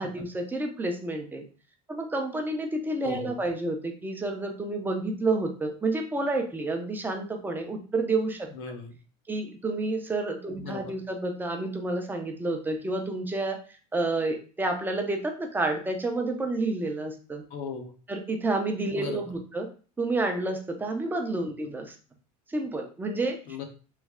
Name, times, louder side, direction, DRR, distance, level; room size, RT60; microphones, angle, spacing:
voice 1, 0.0-1.4 1.9-8.5 9.3-13.6 13.9-17.4 18.1-19.7 20.0-21.9 22.5-23.4, right 2 dB, 10° right, 3 dB, 0.5 m, -29 dB
voice 2, 3.0-3.3 8.6-8.9 10.6-11.0 17.5-17.9 19.0-19.2 23.5-23.6, left 6 dB, 75° left, 5 dB, 0.8 m, -37 dB
3.1 x 2.2 x 3.6 m, 0.37 s
cardioid pair, 135°, 18 cm